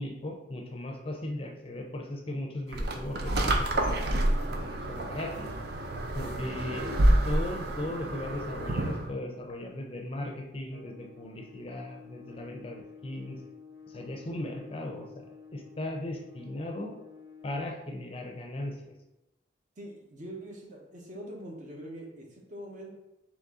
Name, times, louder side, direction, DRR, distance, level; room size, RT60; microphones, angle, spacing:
voice 1, 0.0-4.0 4.5-5.5 6.1-6.9 7.2-13.4 13.9-16.9 17.4-18.9, left 1 dB, 30° left, 2 dB, 0.5 m, -37 dB
sound 1, 2.7-9.1, right 1 dB, 60° right, 0.5 m, -28 dB
sound 2, 10.7-17.8, left 5 dB, 85° left, 0.5 m, -51 dB
voice 2, 19.8-23.0, right 1 dB, 45° right, -1 dB, 0.9 m, -43 dB
4.0 x 3.0 x 3.6 m, 0.93 s
head